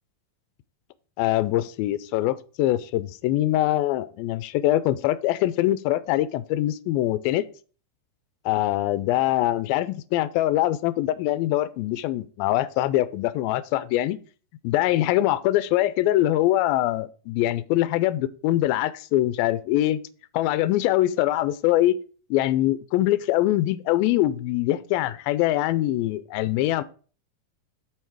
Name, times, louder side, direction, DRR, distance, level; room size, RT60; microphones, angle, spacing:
voice 1, 1.2-7.5 8.5-14.2 14.6-20.0 20.3-22.0 22.3-26.8, left 14 dB, 90° left, 2.4 m, -23 dB
6.8 x 5.6 x 4.6 m
omnidirectional pair, 4.1 m